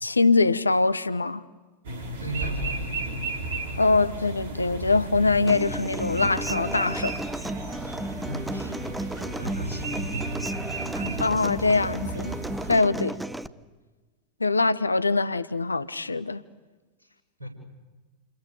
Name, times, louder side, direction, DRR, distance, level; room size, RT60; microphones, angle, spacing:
voice 1, 0.0-1.4 3.8-7.1 11.2-12.4 12.7-13.1 14.4-16.4, left 3 dB, 80° left, 0.9 m, -23 dB
sound 1, 1.8-12.8, right 3 dB, 55° right, 4.8 m, -34 dB
voice 2, 2.2-3.1 8.3-8.7 9.1-10.6 10.9-11.2 13.0-13.2 17.0-17.1 17.4-17.5, right 1 dB, 85° right, 7.3 m, -36 dB
Human voice / Acoustic guitar, 5.5-13.5, right 1 dB, 5° right, 0.9 m, -34 dB
29.5 x 29.0 x 6.9 m
figure-of-eight pair, 90°, 0 cm